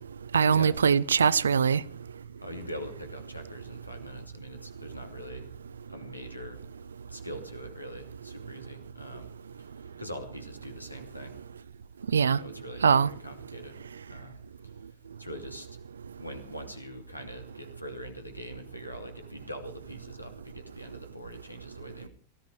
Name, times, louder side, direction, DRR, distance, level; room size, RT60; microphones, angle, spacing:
voice 1, 0.3-1.8 12.1-12.4 12.8-13.1, right 6 dB, 70° right, 0.6 m, -22 dB
voice 2, 2.4-5.6 5.9-6.6 7.1-9.3 9.6-11.3 12.4-13.8 14.1-14.4 15.2-15.7 16.2-22.1, equal, 90° left, 2.9 m, -43 dB
18.5 x 14.5 x 4.8 m
figure-of-eight pair, 90°, 0 cm